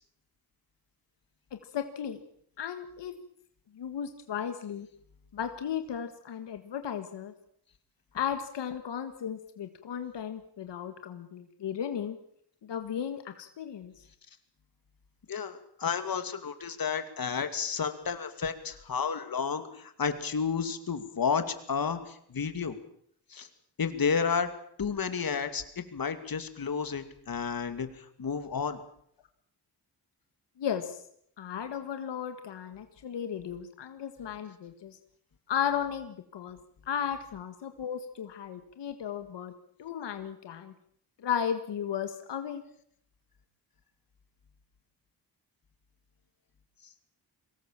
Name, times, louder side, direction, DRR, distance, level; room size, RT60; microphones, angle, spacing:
voice 1, 1.5-2.2 2.6-3.1 3.7-4.9 5.3-7.3 8.1-12.2 12.6-13.9 30.6-31.0 31.4-35.0 35.5-36.6 36.9-39.5 39.8-40.7 41.2-42.6, left 8 dB, 90° left, 8 dB, 1.7 m, -35 dB
voice 2, 15.3-22.7 23.3-23.5 23.8-24.5 24.8-28.8, left 6 dB, 55° left, 9 dB, 2.5 m, -31 dB
23.0 x 18.5 x 7.5 m, 0.69 s
cardioid pair, 80°, 41 cm